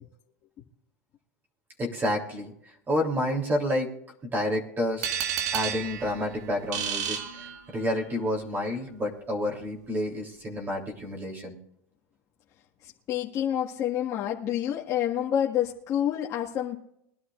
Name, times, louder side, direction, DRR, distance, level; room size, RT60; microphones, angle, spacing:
voice 1, 1.8-3.9 4.3-5.1 5.5-11.6, left 1 dB, 20° right, 0 dB, 3.4 m, -29 dB
sound 1, 5.0-8.1, right 8 dB, 80° right, 1.9 m, -32 dB
voice 2, 12.8-16.8, left 10 dB, 40° left, -3 dB, 1.7 m, -28 dB
22.5 x 11.5 x 2.5 m, 0.76 s
supercardioid pair, 130°, 9 cm